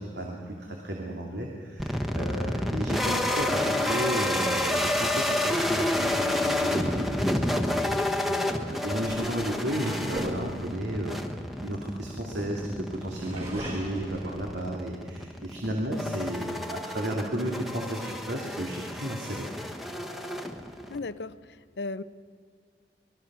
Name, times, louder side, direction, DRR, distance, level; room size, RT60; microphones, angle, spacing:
voice 1, 0.0-11.2 11.6-19.5, right 1 dB, 85° right, 0 dB, 2.6 m, -33 dB
sound 1, 1.8-21.0, left 1 dB, ahead, 1.1 m, -30 dB
sound 2, 2.8-4.4 7.3-7.6 8.6-12.4 12.9-15.0 15.5-15.6 16.0-16.5, equal, 35° right, 6.9 m, -41 dB
voice 2, 20.9-21.4 21.8-22.0, left 3 dB, 75° left, 14 dB, 0.6 m, -34 dB
25.0 x 20.0 x 6.2 m, 2.2 s
head